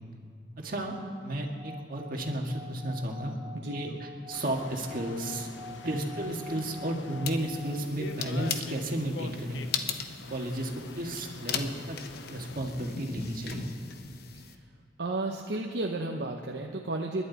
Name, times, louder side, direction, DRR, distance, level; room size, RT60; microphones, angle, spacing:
voice 1, 0.6-3.3 3.7-9.6 10.3-12.0 12.3-13.7, right 1 dB, 50° right, 1 dB, 1.9 m, -33 dB
Singing / Glass, 1.6-8.1, left 2 dB, 25° right, 0.5 m, -47 dB
voice 2, 3.5-4.0 5.8-6.0 15.0-17.2, right 2 dB, 65° right, 1 dB, 0.8 m, -33 dB
sound 1, 4.3-12.6, left 3 dB, 90° left, 0.8 m, -46 dB
sound 2, 7.2-14.6, left 6 dB, 55° left, 0.9 m, -39 dB
29.5 x 11.5 x 4.1 m, 2.2 s
head